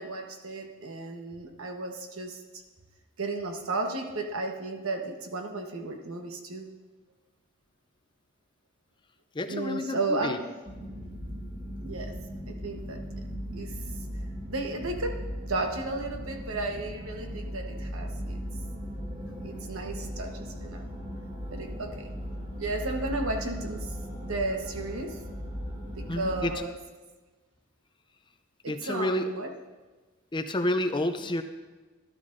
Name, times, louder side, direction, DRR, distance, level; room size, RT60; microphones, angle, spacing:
voice 1, 0.0-2.6 3.2-6.7 9.5-10.5 11.8-13.0 13.5-13.8 14.5-18.4 19.4-20.9 21.5-22.1 22.5-24.0 24.2-25.2 26.0-26.8 28.6-29.5, right 2 dB, 70° right, 4 dB, 1.2 m, -34 dB
voice 2, 9.3-10.4 26.1-26.5 28.7-29.3 30.3-31.4, left 1 dB, 20° left, 8 dB, 0.5 m, -29 dB
sound 1, 10.6-26.5, equal, 30° right, 1.7 m, -38 dB
13.0 x 12.0 x 2.6 m, 1.3 s
head